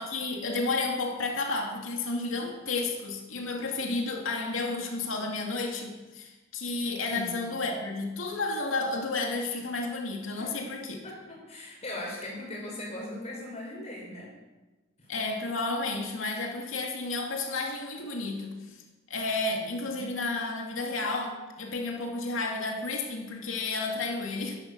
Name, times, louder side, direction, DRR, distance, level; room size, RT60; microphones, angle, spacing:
voice 1, 0.0-11.0 15.1-18.8 19.1-24.6, left 3 dB, 85° left, 1 dB, 2.5 m, -32 dB
voice 2, 7.1-7.6 10.4-10.6 11.0-14.3 19.6-20.1, left 1 dB, 35° left, -2 dB, 5.4 m, -40 dB
12.5 x 11.0 x 6.9 m, 1.2 s
head